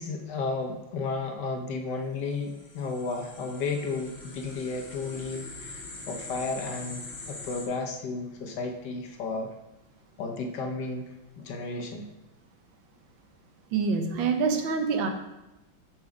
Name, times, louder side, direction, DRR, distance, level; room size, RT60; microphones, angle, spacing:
voice 1, 0.0-9.5 10.2-12.0, left 3 dB, 65° left, 3 dB, 1.4 m, -33 dB
sound 1, 2.3-7.7, left 2 dB, 35° left, 1.7 m, -43 dB
voice 2, 13.7-15.1, right 5 dB, 70° right, 5 dB, 1.6 m, -26 dB
6.7 x 6.4 x 4.9 m, 0.99 s
omnidirectional pair, 2.2 m